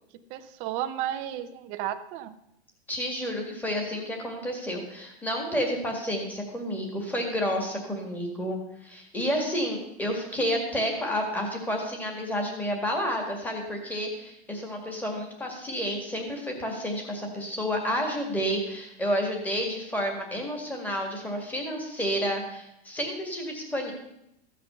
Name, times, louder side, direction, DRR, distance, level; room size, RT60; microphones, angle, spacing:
voice 1, 0.3-2.3, right 11 dB, 20° right, 9 dB, 0.5 m, -33 dB
voice 2, 2.9-23.9, equal, 5° left, 1 dB, 1.9 m, -30 dB
15.0 x 5.9 x 6.8 m, 0.81 s
supercardioid pair, 165°, 33 cm